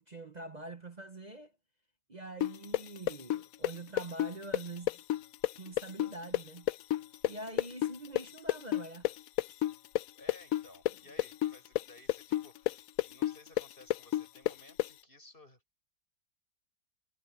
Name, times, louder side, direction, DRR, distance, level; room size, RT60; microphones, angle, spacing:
voice 1, 0.0-1.5 2.1-5.0 5.5-6.7 7.3-9.1, right 2 dB, 35° right, 0.7 m, -45 dB
sound 1, 2.4-10.0 10.3-14.9, left 14 dB, 75° left, 0.8 m, -30 dB
voice 2, 10.1-15.6, left 2 dB, 30° left, 6.2 m, -57 dB
omnidirectional pair, 2.0 m